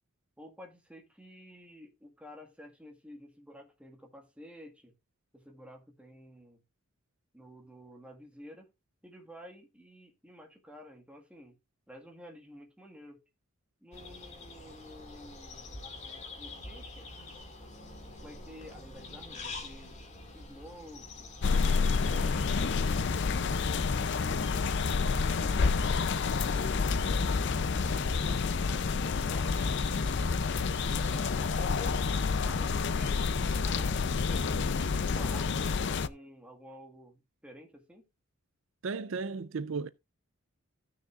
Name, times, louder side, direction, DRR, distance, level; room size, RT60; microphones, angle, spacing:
voice 1, 0.4-4.9 5.3-6.6 7.3-8.7 9.0-11.6 11.9-13.2 13.8-15.9 16.4-17.1 18.2-20.0 20.3-21.3 30.7-38.0, equal, 5° right, 1.7 m, -51 dB
sound 1, 13.9-32.0, left 2 dB, 30° left, 2.1 m, -47 dB
sound 2, 21.4-36.1, left 4 dB, 55° left, 0.5 m, -29 dB
voice 2, 38.8-39.9, right 4 dB, 60° right, 0.5 m, -34 dB
15.0 x 6.6 x 2.4 m
head